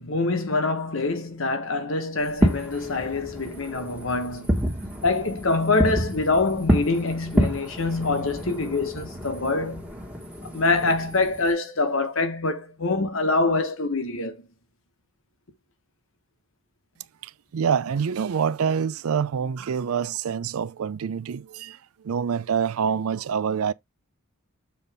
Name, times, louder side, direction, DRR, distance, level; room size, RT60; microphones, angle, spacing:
voice 1, 0.0-4.5 5.0-9.9 10.4-14.4, left 3 dB, 60° left, 1.2 m, -25 dB
Fireworks, 2.2-11.5, equal, 5° right, 1.4 m, -28 dB
voice 2, 17.2-21.8 22.0-23.7, right 7 dB, 75° right, 0.4 m, -26 dB
7.1 x 4.1 x 3.4 m
head